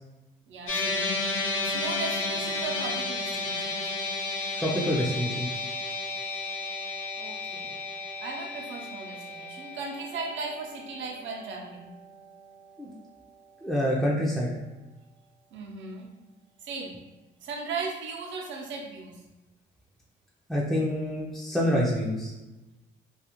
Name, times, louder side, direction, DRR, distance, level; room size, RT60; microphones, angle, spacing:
voice 1, 0.5-3.9 7.2-7.7 8.2-11.9 15.5-16.1 16.6-17.0 17.4-19.2, right 4 dB, 70° right, 0 dB, 0.6 m, -37 dB
sound 1, 0.7-13.1, left 2 dB, 80° left, 0.6 m, -33 dB
voice 2, 4.6-5.6 12.8-12.9 13.6-14.5 20.5-22.3, equal, ahead, -5 dB, 0.4 m, -27 dB
2.4 x 2.4 x 2.9 m, 1.1 s
cardioid pair, 90°, 20 cm